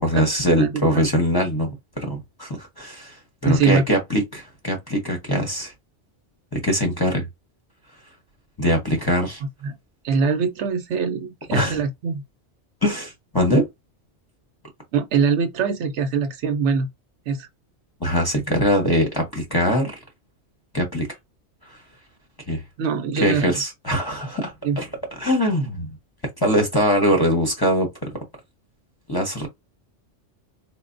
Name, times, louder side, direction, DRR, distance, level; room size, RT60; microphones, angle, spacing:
voice 1, 0.0-5.7 6.5-7.3 8.6-9.4 11.5-11.8 12.8-13.7 18.0-19.9 20.7-21.1 21.6-21.8 22.5-22.6 23.2-24.9 25.2-25.9 26.4-27.9 29.1-29.5, equal, 25° left, 0.7 m, -22 dB
voice 2, 0.6-1.0 3.4-3.8 9.6-9.8 10.0-12.2 14.9-16.9 17.3-17.5 22.8-23.6 24.6-24.8, right 5 dB, 75° right, 0.9 m, -23 dB
4.2 x 2.1 x 2.5 m
omnidirectional pair, 1.2 m